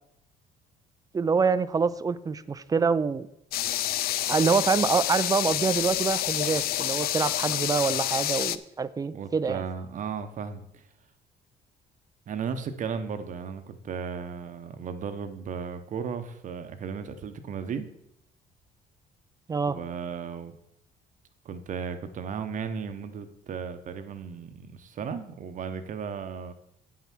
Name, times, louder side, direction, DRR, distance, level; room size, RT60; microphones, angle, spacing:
voice 1, 1.1-3.3 4.3-9.6 19.5-19.8, right 5 dB, 20° right, 15 dB, 0.4 m, -26 dB
sound 1, 3.5-8.6, left 13 dB, 65° left, 0.5 m, -28 dB
voice 2, 9.1-10.8 12.3-17.9 19.6-20.6 21.4-26.5, right 6 dB, 50° right, 9 dB, 0.9 m, -35 dB
8.6 x 5.8 x 6.1 m, 0.78 s
cardioid pair, 110°, 17 cm